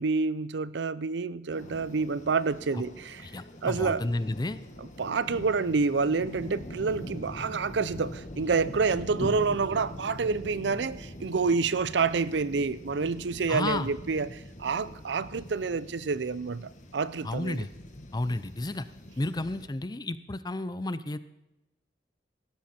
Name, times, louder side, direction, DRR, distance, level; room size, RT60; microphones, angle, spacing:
voice 1, 0.0-3.3 3.6-4.0 4.8-17.6, right 4 dB, 75° right, 17 dB, 0.5 m, -28 dB
Dry rolling thunder Mexican jungle, 1.5-19.7, left 1 dB, 45° left, 1.5 m, -43 dB
voice 2, 3.2-4.6 13.5-13.9 17.2-17.7 18.1-18.8 19.2-21.2, left 2 dB, 25° left, 14 dB, 0.6 m, -31 dB
17.0 x 12.5 x 4.3 m, 0.95 s
head